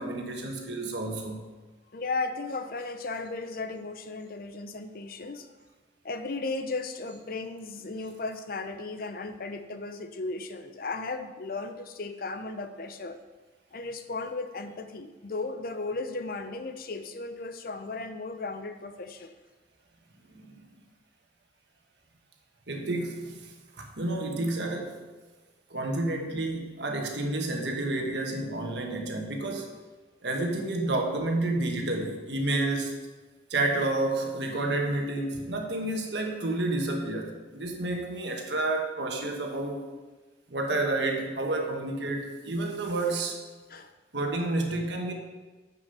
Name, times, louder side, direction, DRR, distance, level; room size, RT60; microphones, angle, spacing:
voice 1, 0.0-1.4 20.3-20.6 22.7-23.5 23.8-25.0 25.7-29.7 30.2-32.9 33.5-39.8 40.5-43.4 44.1-45.1, right 2 dB, 75° right, 2 dB, 1.4 m, -30 dB
voice 2, 1.9-5.5 6.0-13.2 13.7-19.4 43.7-43.9, left 3 dB, 55° left, 9 dB, 0.6 m, -35 dB
7.6 x 6.8 x 5.5 m, 1.3 s
head